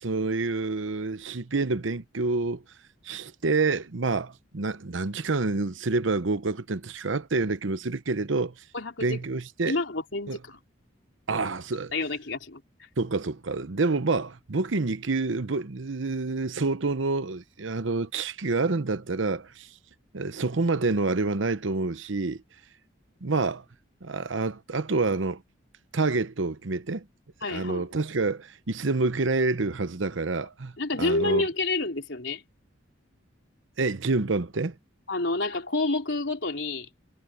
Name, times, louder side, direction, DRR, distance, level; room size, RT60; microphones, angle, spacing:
voice 1, 0.0-2.6 3.0-8.5 9.0-9.8 10.3-10.4 11.3-11.9 13.0-19.7 20.1-22.4 23.2-23.6 24.0-25.4 25.9-27.0 27.5-30.7 31.0-31.5 33.8-34.7, right 3 dB, 75° right, 0.9 m, -27 dB
voice 2, 8.7-9.2 9.7-10.6 11.9-12.6 27.4-27.9 30.8-32.4 35.1-36.9, left 2 dB, 65° left, 3.4 m, -28 dB
head